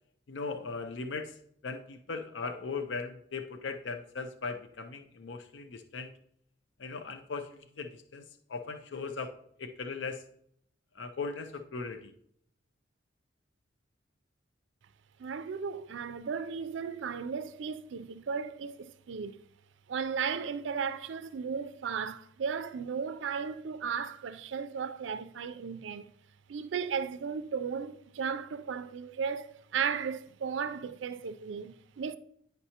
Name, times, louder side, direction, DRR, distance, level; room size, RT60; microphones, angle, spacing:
voice 1, 0.3-1.4 1.6-6.1 6.8-8.2 8.5-10.2 11.0-12.1, left 4 dB, 80° left, 0.5 m, -38 dB
voice 2, 15.2-19.4 19.9-26.1 26.5-32.2, right 6 dB, 85° right, 0.4 m, -35 dB
9.9 x 5.3 x 2.8 m
head